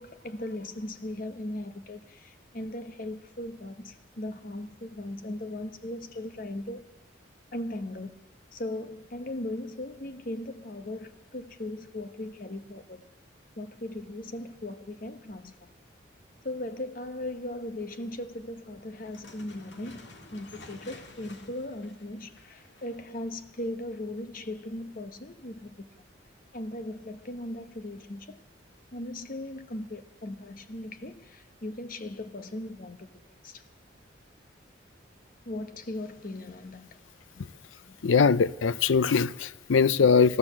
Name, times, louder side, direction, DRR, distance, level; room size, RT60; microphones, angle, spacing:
voice 1, 0.0-6.9 7.5-8.1 8.5-13.1 13.6-15.7 16.4-25.9 26.5-28.4 28.9-33.7 35.4-36.9, left 1 dB, 45° left, 1.0 m, -38 dB
sound 1, 19.0-23.2, left 2 dB, 65° left, 1.9 m, -51 dB
voice 2, 38.0-40.4, left 5 dB, 85° left, 0.5 m, -22 dB
14.5 x 12.0 x 7.3 m
head